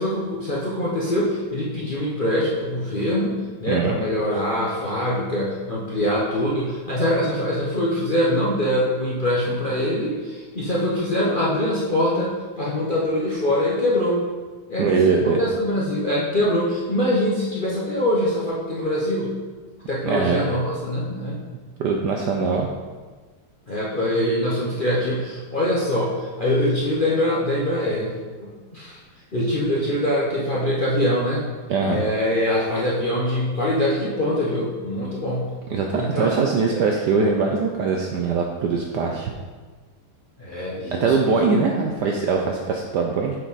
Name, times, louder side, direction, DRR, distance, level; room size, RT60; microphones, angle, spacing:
voice 1, 0.0-14.2 14.7-19.4 19.9-21.4 23.7-28.1 28.4-29.0 29.3-31.4 31.9-35.5 36.0-36.4 36.7-36.9 40.4-41.3, left 1 dB, 65° left, -6 dB, 0.5 m, -23 dB
voice 2, 14.8-15.4 20.0-20.4 21.8-22.7 31.7-32.0 35.7-39.3 41.0-43.4, right 4 dB, 75° right, 1 dB, 1.0 m, -22 dB
8.0 x 4.6 x 4.0 m, 1.4 s
omnidirectional pair, 2.4 m